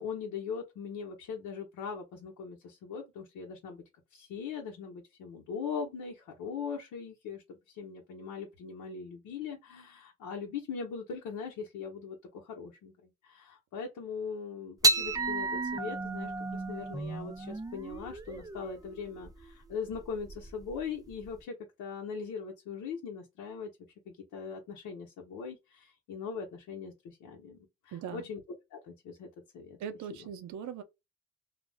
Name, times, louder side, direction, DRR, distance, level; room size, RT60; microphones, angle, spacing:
voice 1, 0.0-3.8 4.1-23.7 24.1-28.4 28.7-29.3 29.5-29.8, left 6 dB, 90° left, 0.8 m, -40 dB
sound 1, 14.8-21.4, right 3 dB, 15° right, 0.3 m, -33 dB
voice 2, 27.9-28.3 29.8-30.8, right 8 dB, 75° right, 0.6 m, -40 dB
2.4 x 2.1 x 3.3 m
cardioid pair, 90°, 30 cm